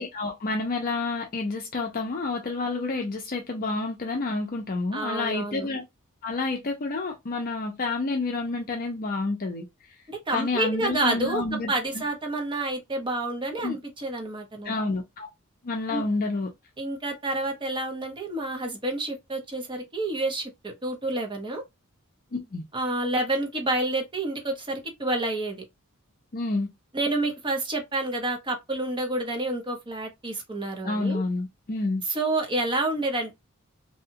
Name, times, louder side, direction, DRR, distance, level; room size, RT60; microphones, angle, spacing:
voice 1, 0.0-5.8 6.2-9.6 10.3-12.0 13.6-13.8 14.6-15.3 15.6-16.5 22.3-22.6 26.3-26.7 30.8-32.0, left 3 dB, 40° left, 0.5 m, -29 dB
voice 2, 4.9-5.7 10.1-14.7 15.9-16.0 16.8-21.6 22.7-25.6 26.9-31.2 32.0-33.3, right 2 dB, 20° right, 0.8 m, -29 dB
2.7 x 2.3 x 2.7 m
head